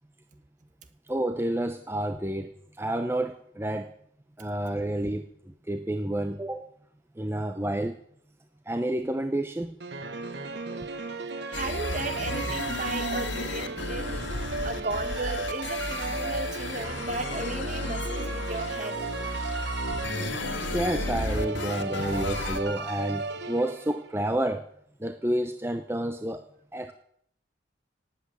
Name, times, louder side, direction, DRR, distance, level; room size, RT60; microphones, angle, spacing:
voice 1, 1.1-2.5 2.8-3.9 4.4-6.7 7.2-8.0 8.7-9.8 14.1-14.2 19.5-19.6 20.7-24.7 25.0-26.4 26.7-26.9, right 1 dB, 10° right, 8 dB, 0.7 m, -30 dB
sound 1, 9.8-24.1, right 3 dB, 60° right, 1.1 m, -35 dB
sound 2, 11.5-22.6, left 2 dB, 75° left, 1.8 m, -33 dB
voice 2, 11.5-14.2 14.6-19.0, right 2 dB, 40° right, 9 dB, 1.6 m, -35 dB
18.5 x 8.4 x 7.7 m, 0.66 s
head